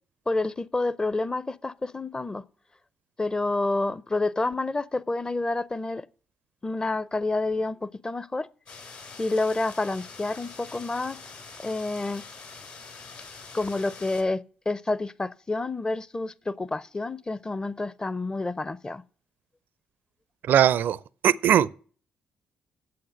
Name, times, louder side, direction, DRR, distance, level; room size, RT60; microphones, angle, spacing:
voice 1, 0.3-2.4 3.2-6.0 6.6-8.5 9.2-11.2 11.6-12.2 13.5-19.0, left 2 dB, 20° left, 0.6 m, -29 dB
sound 1, 8.7-14.2, left 4 dB, 65° left, 3.2 m, -44 dB
voice 2, 20.5-21.0 21.2-21.7, right 10 dB, 60° right, 0.4 m, -19 dB
8.6 x 7.5 x 6.4 m
hypercardioid pair, 50°, 4 cm